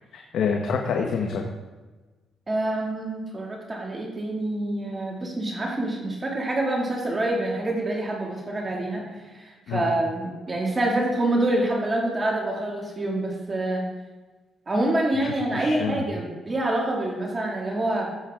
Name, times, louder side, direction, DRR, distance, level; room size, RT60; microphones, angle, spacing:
voice 1, 0.1-1.4 9.7-9.8 15.2-16.0, left 6 dB, 75° left, 2 dB, 1.0 m, -27 dB
voice 2, 2.5-9.0 9.3-13.8 14.7-18.1, right 1 dB, 25° right, -2 dB, 2.2 m, -26 dB
14.0 x 7.4 x 3.6 m, 1.3 s
cardioid pair, 90°, 0 cm